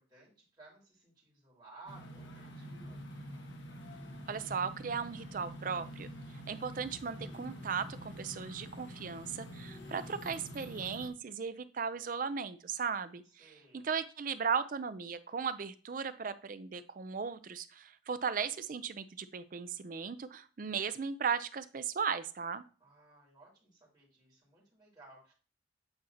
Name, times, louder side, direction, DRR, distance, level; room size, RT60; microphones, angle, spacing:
voice 1, 0.0-3.0 13.4-13.9 22.8-25.3, right 3 dB, 20° right, -6 dB, 2.9 m, -58 dB
sound 1, 1.9-11.1, equal, 75° left, 1.2 m, -46 dB
voice 2, 4.3-6.1 6.5-13.4 13.7-22.6, right 6 dB, 45° right, 13 dB, 0.4 m, -37 dB
8.7 x 4.2 x 2.8 m, 0.38 s
head